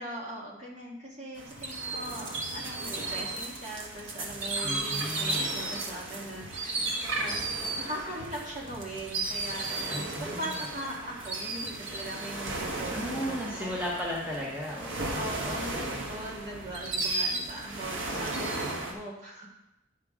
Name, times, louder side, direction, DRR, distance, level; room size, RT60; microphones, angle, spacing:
voice 1, 0.0-13.7 15.1-19.5, right 1 dB, 40° right, -3 dB, 1.9 m, -40 dB
sound 1, 1.4-18.9, right 2 dB, 80° right, 1.4 m, -34 dB
voice 2, 4.6-5.6 9.9-10.6 12.9-16.0, equal, 10° right, -5 dB, 1.2 m, -36 dB
10.0 x 6.0 x 3.7 m, 0.90 s
head